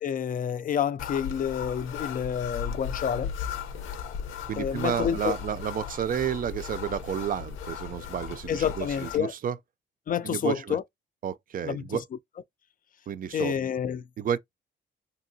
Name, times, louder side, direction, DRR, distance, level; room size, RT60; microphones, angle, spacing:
voice 1, 0.0-3.3 4.6-5.4 8.5-9.3 10.1-10.8 11.6-11.9 13.3-14.0, left 8 dB, 45° left, 0.4 m, -29 dB
sound 1, 1.0-9.2, left 7 dB, 85° left, 0.7 m, -36 dB
voice 2, 4.5-9.6 10.2-10.8 11.2-12.0 13.1-13.5 14.2-14.4, right 9 dB, 45° right, 0.4 m, -31 dB
2.8 x 2.7 x 2.6 m
cardioid pair, 90°, 20 cm